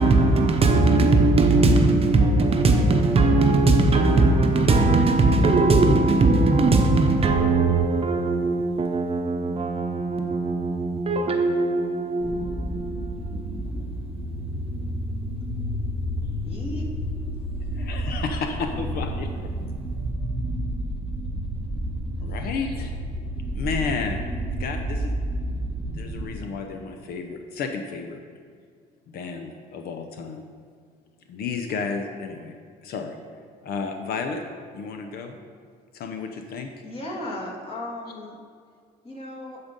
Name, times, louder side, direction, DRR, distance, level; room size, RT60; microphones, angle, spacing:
voice 1, 0.0-13.8, right 2 dB, 35° right, 0.8 m, -20 dB
sound 1, 12.2-26.3, equal, 5° right, 1.5 m, -30 dB
voice 2, 16.4-16.9 36.8-38.4 39.0-39.6, left 1 dB, 35° left, 2.0 m, -35 dB
voice 3, 17.7-18.5 18.8-19.3 22.2-22.9 23.5-25.2 25.4-25.6 25.9-28.2 29.1-30.5 31.3-32.5 32.8-33.2 33.6-34.4 34.7-35.4 35.9-36.7, left 5 dB, 65° left, 0.6 m, -32 dB
11.0 x 4.0 x 5.2 m
cardioid pair, 110°, 17 cm